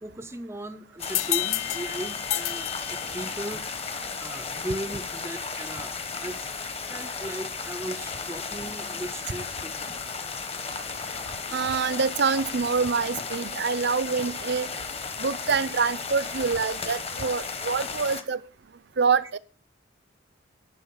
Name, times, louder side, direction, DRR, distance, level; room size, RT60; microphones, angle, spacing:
voice 1, 0.0-5.9 6.2-9.9, right 1 dB, 15° right, 0.5 m, -37 dB
sound 1, 1.0-3.6, left 16 dB, 80° left, 0.5 m, -31 dB
sound 2, 1.0-18.2, left 5 dB, 30° left, 1.0 m, -35 dB
voice 2, 11.5-14.7 15.2-18.4 19.0-19.4, right 5 dB, 55° right, 0.6 m, -26 dB
11.0 x 5.3 x 7.3 m
head